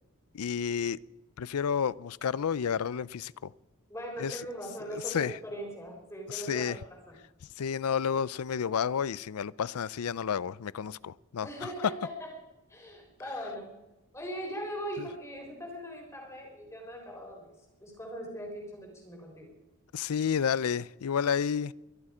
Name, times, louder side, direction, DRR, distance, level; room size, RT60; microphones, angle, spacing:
voice 1, 0.3-1.0 1.4-3.5 4.2-4.4 4.9-5.4 6.3-6.8 7.6-11.7 15.0-15.1 19.9-21.7, left 7 dB, 90° left, 0.5 m, -31 dB
voice 2, 3.9-6.8 7.1-7.2 11.4-12.3 12.7-13.7 14.1-17.5 17.8-19.5, equal, 15° left, 4.2 m, -40 dB
22.5 x 13.0 x 5.0 m
head